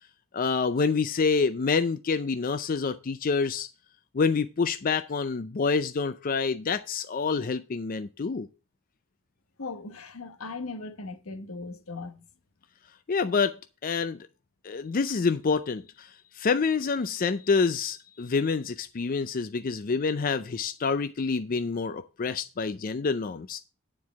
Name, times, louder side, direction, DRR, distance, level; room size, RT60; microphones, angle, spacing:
voice 1, 0.3-3.7 4.1-8.5 13.1-13.6 13.8-14.2 14.6-23.6, left 5 dB, 40° left, 0.4 m, -27 dB
voice 2, 9.6-12.3, left 3 dB, 85° left, 1.2 m, -38 dB
9.7 x 4.6 x 6.9 m
head